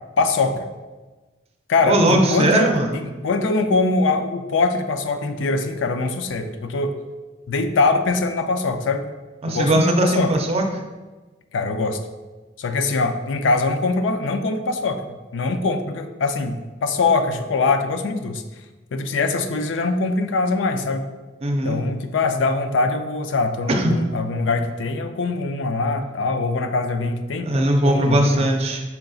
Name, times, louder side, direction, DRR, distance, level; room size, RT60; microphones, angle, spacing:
voice 1, 0.2-0.6 1.7-7.0 7.5-9.1 9.4-10.3 11.5-12.0 12.6-15.0 15.3-18.4 18.9-21.0 21.6-27.5 27.8-28.5, left 3 dB, 85° left, 7 dB, 0.4 m, -22 dB
voice 2, 1.8-3.0 9.4-10.6 21.4-21.8 23.7-24.0 27.5-28.8, right 1 dB, 35° right, 2 dB, 0.5 m, -19 dB
5.7 x 3.8 x 2.4 m, 1.2 s
head